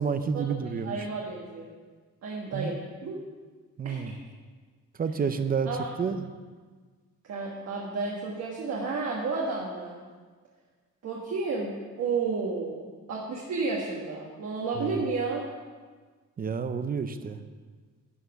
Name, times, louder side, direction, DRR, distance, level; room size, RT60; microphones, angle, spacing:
voice 1, 0.0-1.0 2.5-2.8 3.8-4.1 5.0-5.7 6.0-6.3 14.8-15.0 16.4-17.4, right 6 dB, 30° right, 10 dB, 0.5 m, -29 dB
voice 2, 0.8-1.7 2.2-3.2 3.8-4.1 5.6-5.9 7.3-10.0 11.0-12.8 13.1-15.4, right 4 dB, 55° right, -3 dB, 1.5 m, -31 dB
11.0 x 5.8 x 7.1 m, 1.5 s
cardioid pair, 165°, 32 cm